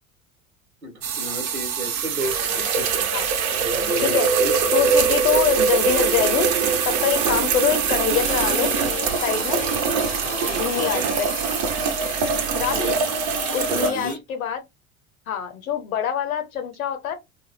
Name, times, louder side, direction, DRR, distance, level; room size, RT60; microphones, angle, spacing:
voice 1, 0.8-3.1 3.5-4.5 10.2-11.1 12.5-13.0 13.7-14.2, right 1 dB, 90° right, 1.1 m, -32 dB
sound 1, 1.0-13.9, right 6 dB, 55° right, 0.9 m, -23 dB
voice 2, 4.7-8.7 9.2-9.6 10.5-11.3 12.5-12.9 13.5-14.6 15.3-17.1, left 9 dB, 75° left, 0.9 m, -25 dB
sound 2, 8.1-14.2, left 6 dB, 20° left, 0.6 m, -35 dB
3.0 x 2.3 x 3.2 m
figure-of-eight pair, 70°, 42 cm